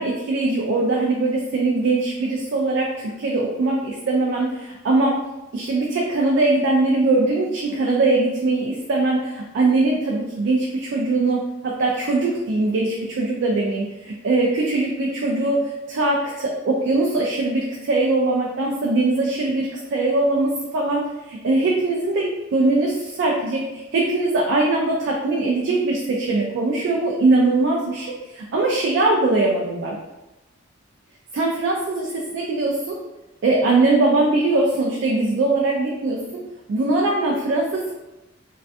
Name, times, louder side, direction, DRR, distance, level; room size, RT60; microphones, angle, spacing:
voice 1, 0.0-5.2 5.5-30.0 31.3-33.0 33.4-36.4 36.7-37.9, right 2 dB, 60° right, -2 dB, 0.3 m, -21 dB
2.5 x 2.2 x 2.4 m, 1.0 s
head